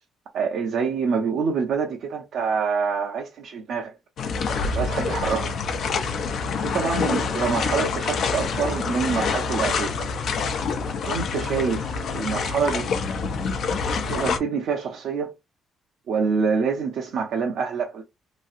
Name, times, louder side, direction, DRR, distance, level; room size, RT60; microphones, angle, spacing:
voice 1, 0.3-3.9 4.6-5.5 6.6-9.9 11.1-12.9 14.1-15.3 16.1-18.0, right 5 dB, 75° right, 0.8 m, -26 dB
sound 1, 4.2-14.4, left 5 dB, 65° left, 0.7 m, -26 dB
3.0 x 2.7 x 2.4 m
cardioid pair, 90°, 0 cm